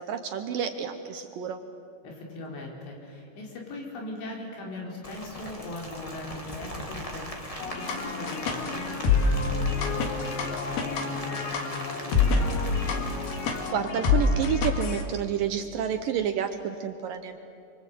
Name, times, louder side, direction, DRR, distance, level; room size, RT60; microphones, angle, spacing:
voice 1, 0.0-1.6 13.7-17.4, right 8 dB, 70° right, 7 dB, 2.2 m, -29 dB
voice 2, 2.0-13.0, left 2 dB, 90° left, -1 dB, 6.3 m, -40 dB
Rain, 5.0-13.7, equal, 20° left, 0.9 m, -40 dB
sound 1, 7.6-15.0, left 4 dB, 65° left, 3.8 m, -27 dB
27.5 x 24.0 x 8.4 m, 2.5 s
omnidirectional pair, 4.9 m